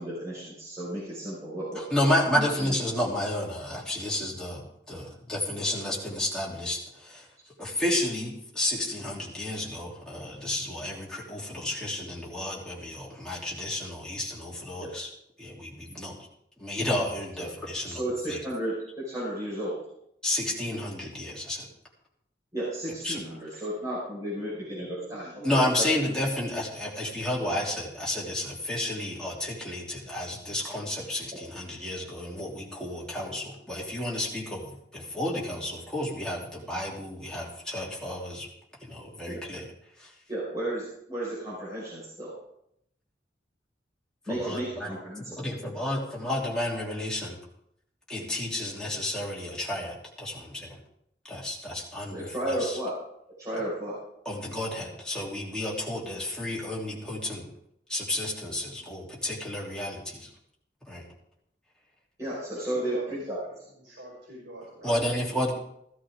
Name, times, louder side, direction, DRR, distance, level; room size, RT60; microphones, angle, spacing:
voice 1, 0.0-2.0 2.3-2.8 17.4-17.5 17.9-19.8 22.5-25.9 39.2-39.4 40.3-42.4 44.3-45.3 52.1-52.9 53.4-54.0 62.2-63.4, right 1 dB, 20° right, -8 dB, 5.2 m, -33 dB
voice 2, 1.7-7.3 7.6-15.1 15.4-16.1 16.6-18.0 18.3-18.4 20.2-21.7 23.0-23.2 25.4-38.5 38.8-39.7 40.0-40.1 44.3-44.9 45.4-47.4 48.1-50.8 51.3-52.8 54.2-57.5 57.9-60.3 60.9-61.0 64.8-65.5, left 1 dB, 5° left, -5 dB, 3.2 m, -31 dB
voice 3, 24.6-25.6 62.3-63.0 63.4-63.5 63.8-64.9, equal, 85° right, -5 dB, 5.3 m, -46 dB
15.5 x 13.5 x 3.7 m, 0.75 s
head